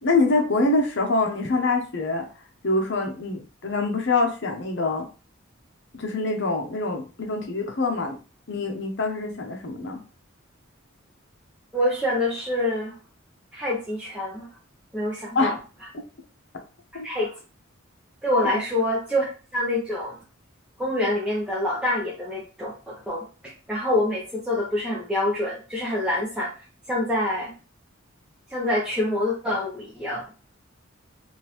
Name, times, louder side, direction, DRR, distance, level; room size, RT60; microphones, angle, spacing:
voice 1, 0.0-2.3 2.6-5.1 5.9-8.2 8.5-10.0 15.3-15.6 16.9-17.1 18.5-18.6, left 3 dB, 60° left, 3 dB, 0.8 m, -25 dB
voice 2, 11.7-13.0 13.5-14.5 14.9-15.5 16.9-17.4 18.2-19.2 19.5-20.2 20.8-26.5 26.9-27.5 28.5-30.2, left 1 dB, 5° right, -6 dB, 0.7 m, -26 dB
3.7 x 2.5 x 2.9 m, 0.34 s
head